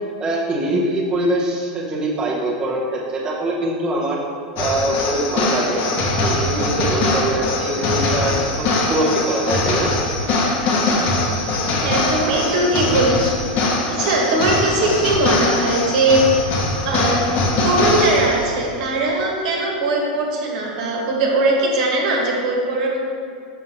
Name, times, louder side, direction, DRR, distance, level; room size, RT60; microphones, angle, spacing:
voice 1, 0.2-4.2 4.6-5.8 6.2-9.9, right 1 dB, 20° right, -5 dB, 0.8 m, -23 dB
sound 1, 4.6-18.6, left 2 dB, 45° left, 0.9 m, -21 dB
voice 2, 11.8-13.3 13.9-16.3 16.8-17.2 17.5-23.1, right 2 dB, 65° right, -1 dB, 1.3 m, -20 dB
6.1 x 5.5 x 2.9 m, 2.2 s
supercardioid pair, 135°, 4 cm